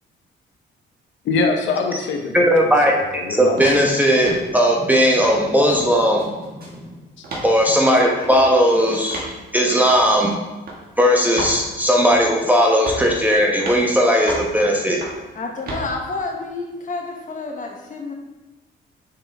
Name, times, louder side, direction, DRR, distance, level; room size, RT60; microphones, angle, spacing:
voice 1, 1.2-2.5 2.9-3.6 8.2-8.3, left 4 dB, 70° left, 3 dB, 0.8 m, -23 dB
voice 2, 2.3-2.9 3.4-6.9 7.4-9.2 9.5-10.3 11.0-15.0, equal, 10° right, -1 dB, 0.9 m, -17 dB
sound 1, 3.6-3.8 4.2-4.5 4.9-5.4 5.7-5.8 6.2-6.8 7.2-7.5 8.2-8.5 9.1-9.3 9.9-10.1 10.7-10.8 11.4-11.6 12.1-12.4 12.9-13.1 13.6-13.8 14.3-14.5 15.0-15.2 15.7-15.9, right 2 dB, 50° right, 1.5 m, -31 dB
voice 3, 15.3-18.1, left 3 dB, 40° left, 2 dB, 0.9 m, -29 dB
6.6 x 4.3 x 3.4 m, 1.1 s
cardioid pair, 90°, 20 cm